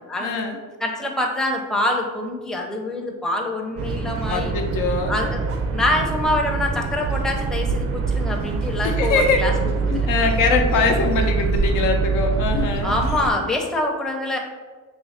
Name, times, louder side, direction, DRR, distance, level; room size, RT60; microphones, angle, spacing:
voice 1, 0.2-0.6 4.0-5.2 8.4-8.5 8.8-9.4 9.9-12.9, left 4 dB, 85° left, 3 dB, 0.6 m, -22 dB
voice 2, 0.8-4.5 5.1-5.4 5.7-9.5 9.8-10.0 12.8-14.4, left 1 dB, ahead, 1 dB, 0.5 m, -25 dB
sound 1, 3.8-13.3, right 4 dB, 50° right, 0.4 m, -24 dB
2.8 x 2.4 x 4.1 m, 1.4 s
cardioid pair, 90°, 30 cm